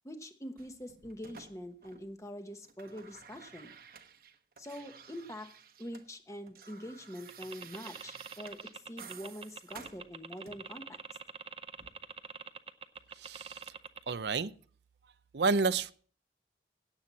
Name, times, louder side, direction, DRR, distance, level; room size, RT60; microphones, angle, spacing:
voice 1, 0.0-3.7 4.6-5.5 5.8-11.0, equal, 15° left, 1.1 m, -44 dB
sound 1, 0.6-2.3 2.5-6.1 6.3-10.8 11.8-11.9, right 6 dB, 55° right, 1.1 m, -53 dB
sound 2, 7.3-14.1, right 5 dB, 30° right, 0.7 m, -45 dB
voice 2, 13.2-13.6 14.1-14.5 15.3-15.9, right 4 dB, 70° right, 0.6 m, -30 dB
17.0 x 7.9 x 4.1 m
head